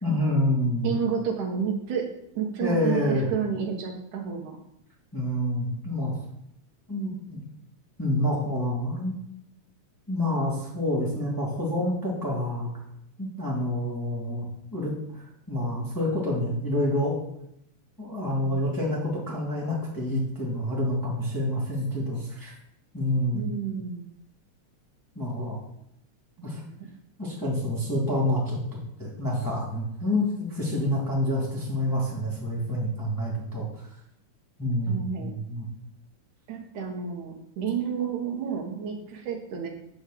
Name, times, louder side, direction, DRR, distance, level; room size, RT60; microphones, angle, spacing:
voice 1, 0.0-0.9 2.6-3.3 5.1-6.1 6.9-7.4 8.0-9.1 10.1-12.7 13.2-14.5 14.7-14.9 15.5-17.2 18.0-22.5 22.9-23.4 25.2-25.6 26.4-26.6 27.2-28.6 29.0-33.7 34.6-35.7, left 1 dB, 5° left, -5 dB, 1.9 m, -27 dB
voice 2, 0.8-2.1 2.4-4.6 23.3-24.1 26.4-26.9 34.8-35.3 36.5-39.7, right 7 dB, 75° right, 1 dB, 2.8 m, -30 dB
9.0 x 5.0 x 6.7 m, 0.76 s
omnidirectional pair, 3.6 m